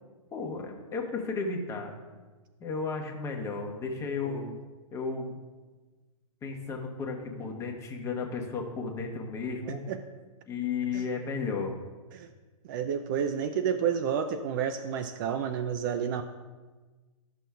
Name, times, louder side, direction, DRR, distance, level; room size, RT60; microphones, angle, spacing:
voice 1, 0.3-1.9 2.6-4.4 4.9-5.4 6.4-9.8 10.5-11.8, left 4 dB, 15° left, 1 dB, 1.0 m, -33 dB
voice 2, 4.2-4.6 9.9-10.0 10.9-11.0 12.1-12.3 12.6-16.2, right 8 dB, 35° right, 8 dB, 0.4 m, -30 dB
12.5 x 6.2 x 2.3 m, 1.3 s
hypercardioid pair, 135°, 18 cm